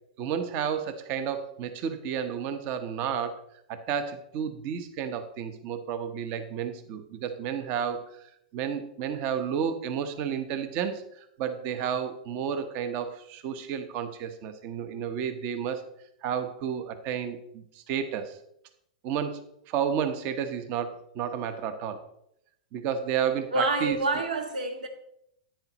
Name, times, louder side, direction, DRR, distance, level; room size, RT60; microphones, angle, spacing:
voice 1, 0.2-3.4 3.7-15.8 16.2-18.4 19.0-22.0 22.7-24.0, right 8 dB, 45° right, 0.9 m, -31 dB
voice 2, 23.5-24.9, right 2 dB, 85° right, 1.7 m, -27 dB
10.0 x 9.2 x 2.9 m
hypercardioid pair, 125°, 4 cm